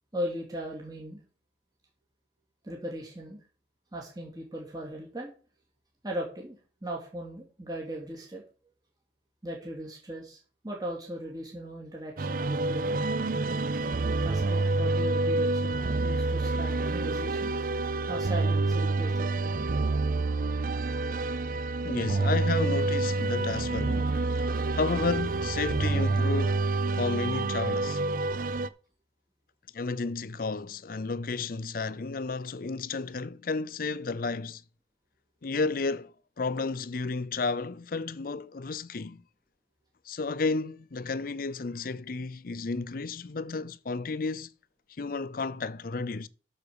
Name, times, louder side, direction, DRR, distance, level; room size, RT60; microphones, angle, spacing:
voice 1, 0.1-1.2 2.6-3.4 3.9-5.3 6.0-8.4 9.4-10.4 10.6-13.0 14.2-17.5 18.1-19.7, equal, 20° right, 2.5 m, -38 dB
sound 1, 12.2-28.7, right 3 dB, 50° right, 0.5 m, -28 dB
voice 2, 21.8-24.2 24.7-26.7 26.9-28.0 29.7-34.6 35.4-36.1 36.4-39.2 40.1-44.5 45.0-46.3, left 4 dB, 55° left, 0.5 m, -32 dB
12.0 x 4.7 x 6.9 m
head